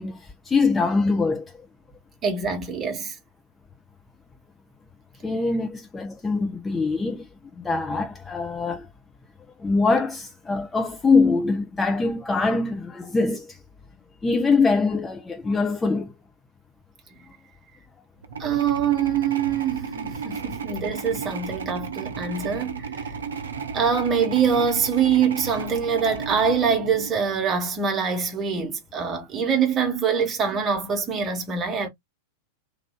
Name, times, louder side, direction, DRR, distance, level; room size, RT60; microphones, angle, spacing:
voice 1, 0.0-1.7 5.2-7.3 7.6-8.9 9.6-13.6 14.2-16.1 19.8-19.9 23.7-23.8, left 4 dB, 15° left, 0.7 m, -23 dB
voice 2, 2.2-3.2 18.4-23.1 23.7-31.9, right 6 dB, 25° right, 1.3 m, -24 dB
sound 1, 18.2-27.6, right 5 dB, 70° right, 0.6 m, -34 dB
3.2 x 2.6 x 3.6 m
figure-of-eight pair, 90°, 0 cm